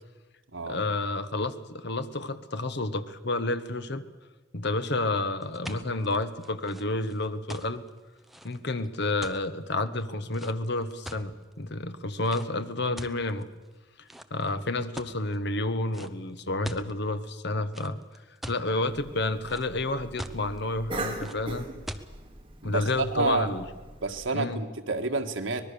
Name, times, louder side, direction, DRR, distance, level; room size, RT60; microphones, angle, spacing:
voice 1, 0.7-4.0 4.5-7.8 8.4-13.5 14.3-18.0 18.5-21.7 22.6-23.7 24.3-24.6, left 2 dB, 60° left, 11 dB, 1.3 m, -30 dB
sound 1, 5.4-11.5 12.2-12.5 13.0-13.7 14.1-14.5 15.0-15.4 15.9-16.1 16.4-16.9 17.7-18.6 19.1-19.8 20.2-20.6 21.2-21.4 21.9-22.1, equal, ahead, 0.9 m, -42 dB
Cough, 18.8-24.3, right 2 dB, 30° right, 2.4 m, -40 dB
voice 2, 22.6-23.5 24.0-25.6, right 3 dB, 85° right, 5 dB, 1.8 m, -29 dB
24.5 x 20.0 x 6.9 m, 1.2 s
head